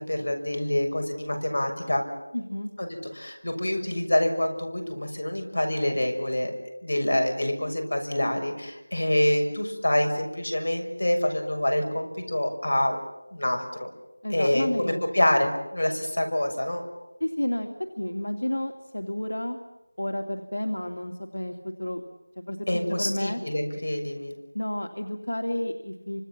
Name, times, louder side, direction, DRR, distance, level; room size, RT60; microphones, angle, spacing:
voice 1, 0.0-2.0 2.8-6.5 6.8-13.0 13.3-13.9 14.3-16.8 22.7-24.3, left 1 dB, 60° left, 4 dB, 6.5 m, -26 dB
voice 2, 2.3-2.7 14.2-15.2 17.2-19.6 20.0-22.0 22.5-23.4 24.5-26.2, left 1 dB, 90° left, 5 dB, 2.5 m, -31 dB
30.0 x 25.5 x 7.4 m, 0.97 s
figure-of-eight pair, 175°, 0 cm